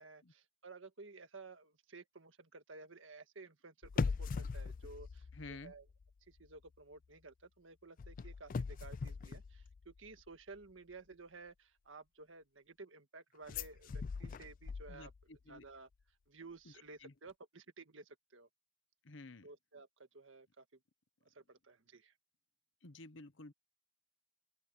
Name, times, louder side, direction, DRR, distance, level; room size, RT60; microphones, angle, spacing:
voice 1, 0.0-5.9 6.3-15.9 16.3-18.5 19.4-20.7 21.3-22.1, right 3 dB, 75° right, 1.7 m, -55 dB
sound 1, 3.8-6.1 6.4-6.7 8.0-10.2 13.5-15.4 15.6-15.7, left 4 dB, 45° left, 0.4 m, -41 dB
voice 2, 5.3-5.7 14.9-15.6 17.0-17.1 19.0-19.5 22.8-23.5, left 2 dB, 70° left, 1.1 m, -52 dB
open air
head